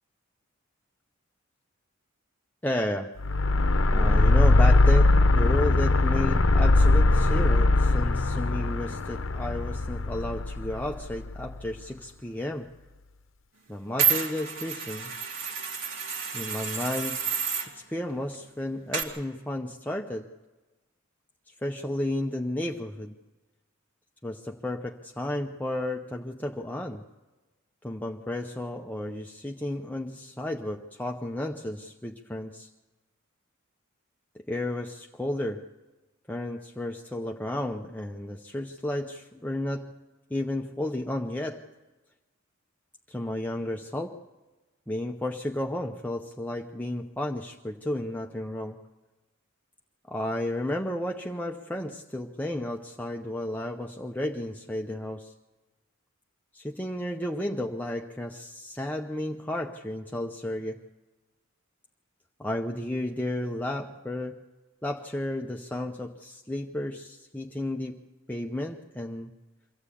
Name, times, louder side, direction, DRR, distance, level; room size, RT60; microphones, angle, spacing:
voice 1, 2.6-3.1 3.9-12.7 13.7-15.1 16.3-17.2 17.6-20.3 21.5-23.2 24.2-27.0 27.8-32.7 34.3-35.6 36.3-39.9 40.3-41.6 43.1-44.2 44.9-48.8 50.1-55.3 56.5-60.8 62.4-64.4 64.8-68.0 68.3-69.3, left 1 dB, 10° left, 2 dB, 0.7 m, -33 dB
sound 1, 3.2-11.5, left 2 dB, 65° left, 0.8 m, -21 dB
sound 2, 14.0-17.7 18.9-19.0, right 7 dB, 70° right, 2.7 m, -29 dB
24.0 x 14.5 x 8.5 m, 1.2 s
head